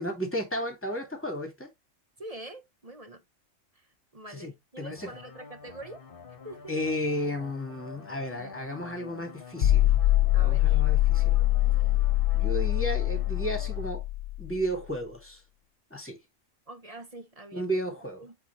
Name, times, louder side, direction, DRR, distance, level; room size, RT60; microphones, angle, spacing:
voice 1, 0.0-1.7 4.3-5.1 6.7-9.9 10.3-11.4 12.3-14.0 14.4-15.4 15.9-16.2 17.5-18.3, equal, 10° left, 2.4 m, -33 dB
voice 2, 2.2-3.2 3.7-6.0 6.4-6.8 10.3-10.8 11.1-12.0 16.7-17.6 18.2-18.3, right 1 dB, 30° right, 1.1 m, -45 dB
sound 1, 5.0-13.9, left 5 dB, 40° left, 1.3 m, -47 dB
sound 2, 9.6-14.6, left 14 dB, 60° left, 1.0 m, -24 dB
8.2 x 4.3 x 3.2 m
omnidirectional pair, 1.4 m